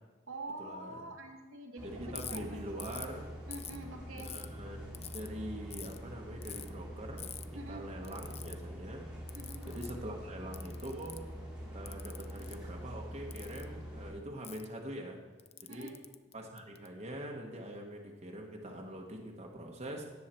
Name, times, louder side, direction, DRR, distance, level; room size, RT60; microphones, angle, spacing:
voice 1, 0.3-2.6 3.5-4.3 7.5-7.8 9.3-9.6 15.7-15.9, right 2 dB, 90° right, 4 dB, 1.7 m, -45 dB
sound 1, 1.8-14.1, equal, 5° right, 2.5 m, -45 dB
voice 2, 1.8-3.3 4.1-7.3 7.7-9.1 9.7-11.2 11.7-15.2 15.6-16.0 16.3-20.0, right 1 dB, 35° right, 0 dB, 1.1 m, -44 dB
Ratchet pawl, 2.1-2.4 2.8-3.1 3.5-4.5 4.9-5.3 5.7-6.0 6.4-6.7 7.2-7.4 8.0-8.6 9.3-10.0 10.5-11.3 11.9-12.6 13.3-13.6 14.4-14.7 15.4-16.9, left 10 dB, 30° left, 0.3 m, -45 dB
17.5 x 6.5 x 4.4 m, 1.3 s
head